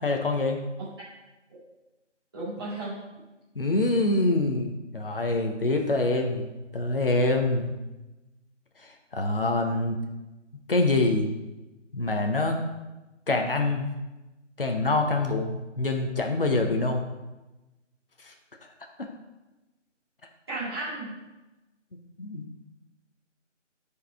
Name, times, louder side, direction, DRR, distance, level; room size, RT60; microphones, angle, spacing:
voice 1, 0.0-0.6 3.6-6.5 6.7-7.7 9.1-10.0 10.7-11.3 11.9-12.6 13.3-13.9 14.6-17.0 19.0-19.1 22.2-22.5, left 2 dB, 45° left, 3 dB, 0.9 m, -25 dB
voice 2, 2.3-3.0 20.5-21.1, right 2 dB, 20° right, -12 dB, 2.4 m, -33 dB
9.6 x 4.9 x 3.5 m, 1.1 s
figure-of-eight pair, 165°, 37 cm